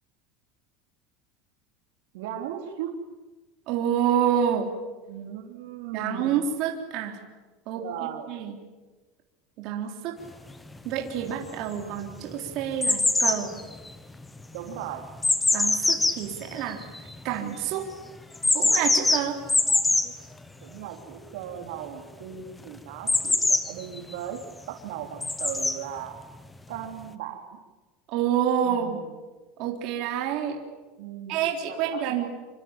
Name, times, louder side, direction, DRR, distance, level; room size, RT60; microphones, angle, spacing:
voice 1, 2.1-2.9 5.1-6.4 7.7-8.4 14.5-15.1 19.7-20.1 20.6-24.4 24.7-26.2 26.7-27.6 28.6-29.1 31.0-31.4 31.7-32.3, right 10 dB, 70° right, 4 dB, 3.6 m, -37 dB
voice 2, 3.7-4.7 5.9-7.2 7.7-7.8 8.3-8.6 9.6-10.1 10.8-13.5 15.5-17.8 18.5-19.4 28.1-29.0 29.6-30.6 31.3-32.3, right 9 dB, 40° right, 2 dB, 3.6 m, -28 dB
sound 1, 10.5-10.6 11.2-11.8 12.1-17.4 18.3-20.1 23.1-24.1 25.2-25.8 26.7-26.8, left 2 dB, 5° left, 1.1 m, -24 dB
26.0 x 25.0 x 8.9 m, 1.2 s
supercardioid pair, 175°, 0 cm